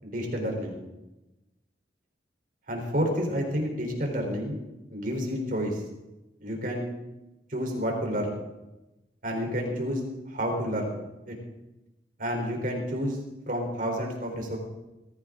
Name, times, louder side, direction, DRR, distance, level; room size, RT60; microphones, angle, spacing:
voice 1, 0.0-0.8 2.7-4.6 4.9-5.8 6.4-6.9 7.5-8.4 9.2-10.0 10.3-10.9 11.3-11.4 12.2-13.2 13.5-14.6, equal, 50° right, 1 dB, 4.0 m, -29 dB
21.5 x 14.5 x 3.9 m, 1.0 s
head